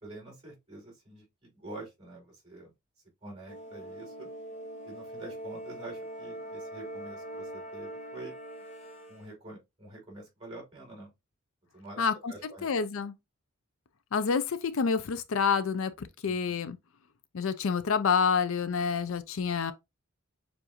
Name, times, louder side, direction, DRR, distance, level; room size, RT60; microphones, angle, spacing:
voice 1, 0.0-1.3 1.5-2.7 3.2-4.3 4.8-8.3 9.1-11.1 11.7-12.7 16.2-16.6, right 2 dB, 25° right, 3.5 m, -46 dB
sound 1, 3.5-9.3, right 1 dB, 30° left, 0.9 m, -42 dB
voice 2, 12.0-13.1 14.1-16.8 17.3-19.7, left 6 dB, 65° left, 0.5 m, -28 dB
6.9 x 2.6 x 2.9 m
head